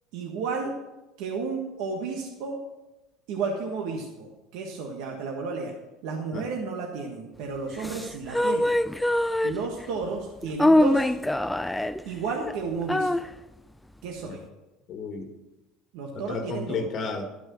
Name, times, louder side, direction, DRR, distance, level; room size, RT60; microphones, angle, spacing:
voice 1, 0.1-0.7 1.2-2.6 3.3-5.8 6.0-8.7 9.4-11.1 12.0-13.3 14.0-14.4 15.9-16.8, right 4 dB, 75° right, 0 dB, 1.5 m, -32 dB
sound 1, 7.7-9.8 10.4-12.1 12.5-12.6 12.9-13.3, left 1 dB, 5° left, 0.4 m, -23 dB
voice 2, 14.9-15.3 16.1-17.3, left 4 dB, 45° left, 5 dB, 1.5 m, -32 dB
12.0 x 6.1 x 6.3 m, 1.0 s
supercardioid pair, 110°, 0 cm